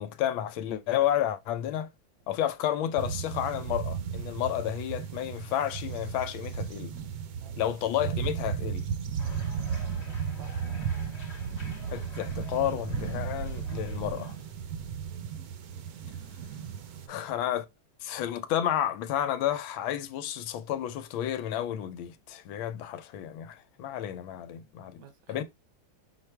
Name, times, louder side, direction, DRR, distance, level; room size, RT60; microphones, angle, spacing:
voice 1, 0.0-1.9 2.3-7.0 7.6-8.9 11.9-14.3 17.1-17.7 18.0-25.0 25.3-25.4, left 11 dB, 90° left, 1.4 m, -31 dB
sound 1, 3.0-17.1, right 7 dB, 65° right, 0.9 m, -35 dB
sound 2, 9.2-14.5, left 4 dB, 40° left, 1.3 m, -50 dB
voice 2, 10.4-10.7 16.7-17.3 25.0-25.4, right 8 dB, 90° right, 1.8 m, -53 dB
5.9 x 2.5 x 3.3 m
omnidirectional pair, 2.2 m